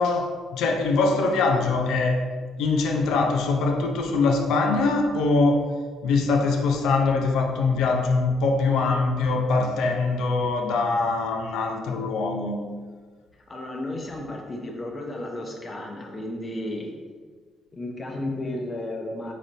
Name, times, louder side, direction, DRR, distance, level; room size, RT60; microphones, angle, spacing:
voice 1, 0.0-2.2 2.6-5.7 6.0-12.7, left 3 dB, 85° left, 3 dB, 0.4 m, -23 dB
voice 2, 13.5-16.9 17.7-19.3, left 1 dB, 30° left, 1 dB, 0.7 m, -33 dB
4.0 x 3.3 x 2.5 m, 1.5 s
cardioid pair, 90°, 0 cm